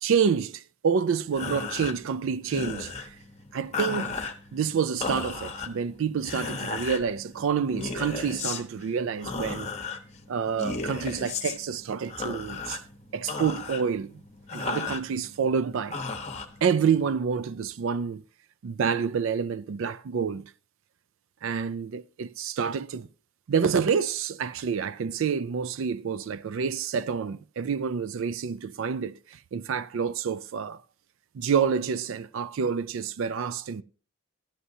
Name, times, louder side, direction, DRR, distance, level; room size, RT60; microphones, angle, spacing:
voice 1, 0.0-2.9 3.5-9.7 10.3-12.8 13.1-14.1 14.5-16.0 16.6-18.2 18.6-20.5 21.4-23.1 23.5-30.8 31.3-33.8, right 6 dB, 65° right, 0.4 m, -28 dB
sound 1, 1.3-17.2, left 4 dB, 30° left, 0.9 m, -36 dB
11.0 x 11.0 x 2.7 m
head